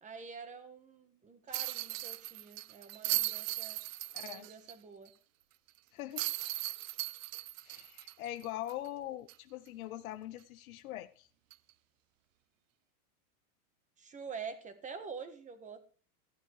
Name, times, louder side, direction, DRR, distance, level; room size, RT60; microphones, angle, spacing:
voice 1, 0.0-3.8 4.2-5.1 14.0-15.8, right 5 dB, 15° right, 1.6 m, -46 dB
sound 1, 1.5-4.7 5.1-5.2 6.2-8.9 9.3-9.4 11.5-11.7, right 17 dB, 55° right, 0.6 m, -37 dB
voice 2, 4.1-4.5 5.9-6.3 7.6-11.3, left 14 dB, 65° left, 1.0 m, -42 dB
14.0 x 9.4 x 4.7 m
supercardioid pair, 145°, 45 cm